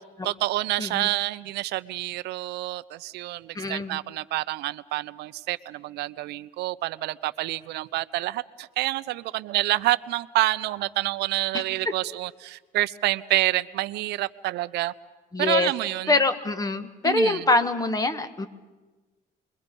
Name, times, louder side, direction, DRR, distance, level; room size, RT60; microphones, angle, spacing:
voice 1, 0.2-14.9 15.4-16.2 17.0-17.5, right 17 dB, 80° right, 0.7 m, -28 dB
voice 2, 3.5-4.0 15.3-15.7 16.1-18.5, left 3 dB, 20° left, 1.6 m, -24 dB
29.5 x 22.5 x 5.3 m
cardioid pair, 110°, 17 cm